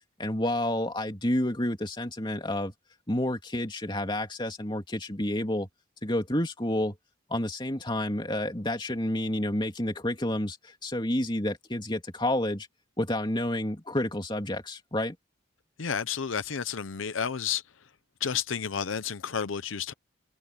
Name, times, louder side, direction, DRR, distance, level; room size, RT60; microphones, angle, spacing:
voice 1, 0.2-2.7 3.1-5.7 6.0-7.0 7.3-12.7 13.0-15.1, left 1 dB, 25° left, 2.9 m, -29 dB
voice 2, 15.8-17.6 18.2-19.9, left 7 dB, 80° left, 0.7 m, -31 dB
open air
head